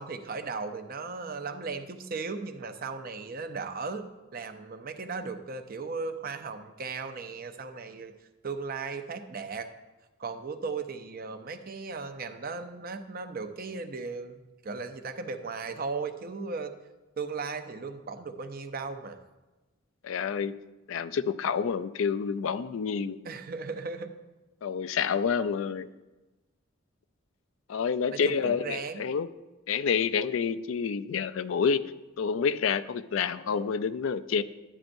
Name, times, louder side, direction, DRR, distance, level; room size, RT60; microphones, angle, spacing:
voice 1, 0.0-4.1 4.3-8.1 8.4-9.7 10.2-16.7 17.2-19.2 23.2-24.1 28.1-29.1, right 4 dB, 45° right, 7 dB, 0.6 m, -36 dB
voice 2, 20.0-20.5 20.9-23.2 24.6-25.9 27.7-29.3 29.7-31.8 32.2-34.4, left 6 dB, 70° left, 13 dB, 0.4 m, -28 dB
10.5 x 9.9 x 2.6 m, 1.1 s
head